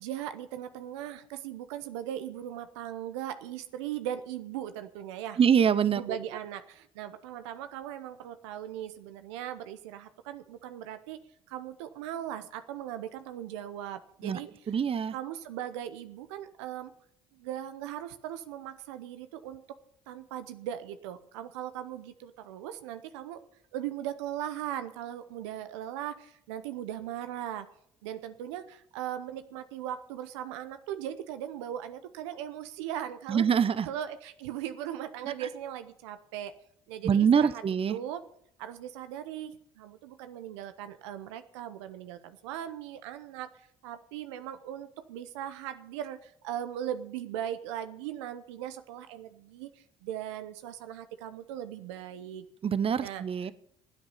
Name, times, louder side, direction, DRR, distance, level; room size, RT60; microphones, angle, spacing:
voice 1, 0.0-5.4 5.8-11.2 11.5-14.5 15.1-16.9 17.3-19.6 20.1-23.4 23.7-27.7 28.0-33.4 33.8-36.5 36.9-38.2 38.6-43.5 43.8-49.7 50.0-52.4 53.0-53.5, right 11 dB, 85° right, 11 dB, 0.8 m, -39 dB
voice 2, 5.4-6.2 14.2-14.4 14.7-15.1 33.3-33.9 37.0-38.0 52.6-53.5, right 7 dB, 40° right, 16 dB, 0.8 m, -24 dB
15.5 x 8.9 x 5.6 m, 0.68 s
hypercardioid pair, 55°, 14 cm